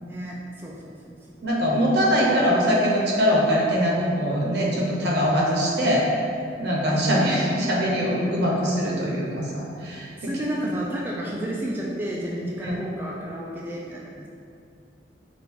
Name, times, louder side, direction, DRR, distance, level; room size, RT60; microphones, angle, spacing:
voice 1, 0.0-1.5 10.2-14.3, equal, 10° right, -5 dB, 0.3 m, -31 dB
voice 2, 1.4-6.3 6.6-10.3 12.6-12.7, equal, 60° right, -3 dB, 0.7 m, -22 dB
4.4 x 2.5 x 3.5 m, 2.5 s
head